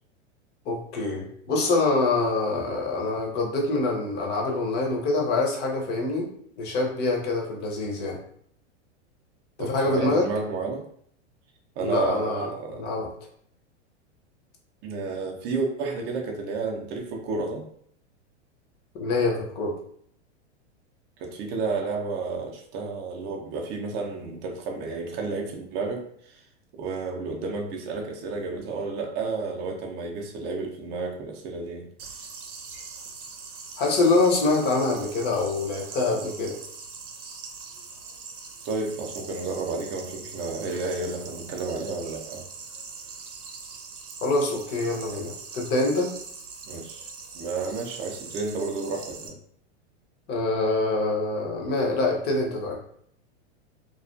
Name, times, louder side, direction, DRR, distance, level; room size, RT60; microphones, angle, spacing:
voice 1, 0.7-6.3 6.6-8.2 9.6-10.3 11.8-13.1 18.9-19.8 33.8-36.6 44.2-46.1 50.3-52.8, left 3 dB, 30° left, 0 dB, 0.6 m, -25 dB
voice 2, 9.6-10.8 11.8-12.9 14.8-17.6 21.2-26.4 26.7-31.9 32.7-32.8 38.6-42.4 46.7-47.1 47.3-49.4, right 4 dB, 30° right, 2 dB, 0.5 m, -31 dB
sound 1, 32.0-49.3, right 5 dB, 80° right, 0.7 m, -42 dB
2.3 x 2.3 x 2.4 m, 0.66 s
hypercardioid pair, 120°, 35 cm